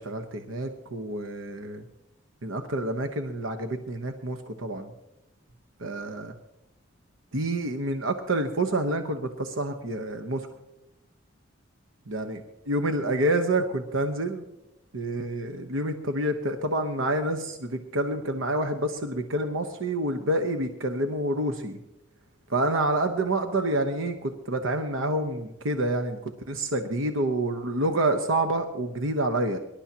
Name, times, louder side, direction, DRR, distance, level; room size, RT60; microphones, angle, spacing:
voice 1, 0.0-1.8 2.4-4.9 5.8-6.3 7.3-10.5 12.1-14.4 14.9-21.8 22.5-29.6, right 1 dB, 85° right, 6 dB, 1.0 m, -28 dB
24.5 x 11.5 x 2.9 m, 0.93 s
head